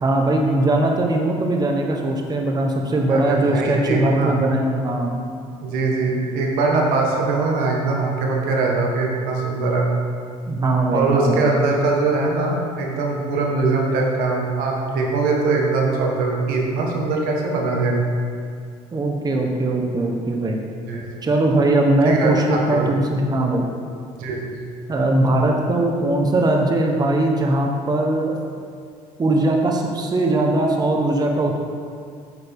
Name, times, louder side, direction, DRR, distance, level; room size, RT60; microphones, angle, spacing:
voice 1, 0.0-5.2 10.5-11.5 18.9-20.6 21.2-23.7 24.9-28.3 29.2-31.6, right 2 dB, 25° right, 1 dB, 1.0 m, -20 dB
voice 2, 3.1-4.4 5.6-9.9 10.9-18.2 20.9-21.0 22.0-23.0 24.1-24.5, right 3 dB, 80° right, 0 dB, 1.3 m, -21 dB
8.1 x 6.9 x 3.6 m, 2.2 s
supercardioid pair, 90°, 15 cm